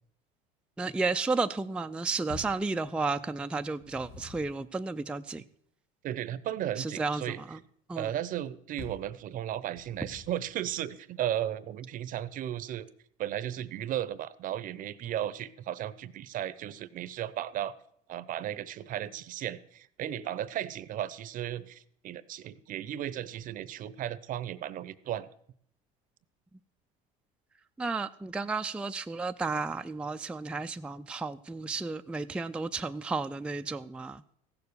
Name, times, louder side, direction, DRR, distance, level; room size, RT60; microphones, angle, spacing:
voice 1, 0.8-5.4 6.8-7.2 7.5-7.6 7.9-8.1 27.8-34.2, right 3 dB, 5° right, 7 dB, 0.4 m, -32 dB
sound 1, 2.3-2.7 3.6-4.6 8.8-9.1 9.7-10.5, left 3 dB, 90° left, 2.6 m, -46 dB
voice 2, 6.0-7.4 7.9-12.9 13.2-17.7 18.1-25.3, right 11 dB, 50° right, 18 dB, 0.7 m, -35 dB
15.5 x 7.0 x 6.8 m, 0.68 s
supercardioid pair, 105°, 19 cm